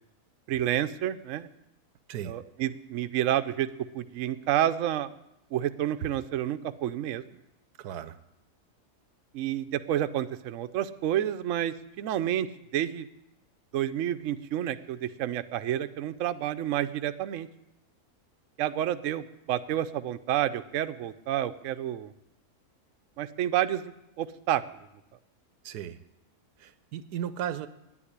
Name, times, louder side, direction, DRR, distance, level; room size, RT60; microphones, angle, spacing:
voice 1, 0.5-1.5 2.2-3.7 3.9-5.1 5.5-7.2 9.3-12.5 12.7-13.1 13.7-17.5 18.6-22.1 23.2-24.6, right 11 dB, 65° right, 10 dB, 0.9 m, -29 dB
voice 2, 7.8-8.2 25.6-26.0 26.6-27.7, right 10 dB, 90° right, 13 dB, 1.3 m, -35 dB
9.8 x 9.3 x 9.9 m, 0.89 s
omnidirectional pair, 1.7 m